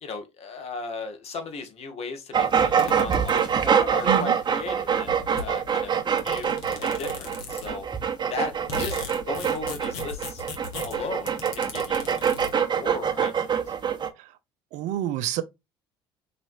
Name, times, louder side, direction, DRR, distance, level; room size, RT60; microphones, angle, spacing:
voice 1, 0.0-5.9 6.2-7.9 8.3-9.0 9.3-10.4 10.8-12.2 12.7-13.6, left 4 dB, 50° left, 1.7 m, -36 dB
sound 1, 2.3-14.1, right 7 dB, 35° right, 1.1 m, -25 dB
sound 2, 2.8-3.8 4.6-4.7 4.9-7.9 8.3-12.5, left 4 dB, 70° left, 1.6 m, -38 dB
voice 2, 14.7-15.4, right 12 dB, 65° right, 0.7 m, -27 dB
6.0 x 3.0 x 2.7 m
hypercardioid pair, 60°, 13 cm